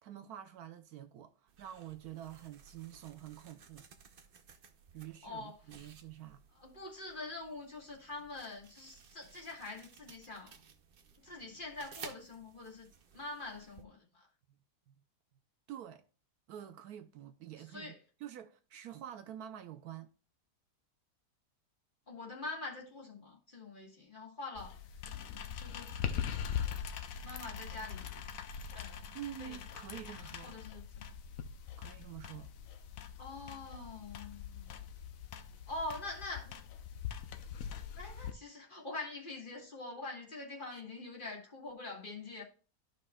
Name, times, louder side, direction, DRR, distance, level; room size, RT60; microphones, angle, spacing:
voice 1, 0.0-3.9 4.9-6.4 14.5-14.6 14.9-15.0 15.7-16.0 16.5-17.9 18.2-20.1 29.1-30.6 31.8-32.5 37.1-37.2 40.7-40.8, right 11 dB, 75° right, 1.1 m, -47 dB
sound 1, 1.5-13.9, right 6 dB, 50° right, 0.6 m, -57 dB
voice 2, 5.2-5.6 6.6-10.5 11.2-12.9 13.1-14.3 17.7-18.0 22.1-24.8 25.6-25.9 26.5-26.7 27.2-28.1 28.7-29.0 29.4-29.6 30.1-30.8 33.2-34.7 35.7-36.6 38.0-42.4, left 2 dB, 30° left, 1.6 m, -44 dB
sound 2, 24.6-38.3, left 8 dB, 65° left, 0.9 m, -42 dB
13.0 x 5.3 x 2.3 m
omnidirectional pair, 1.7 m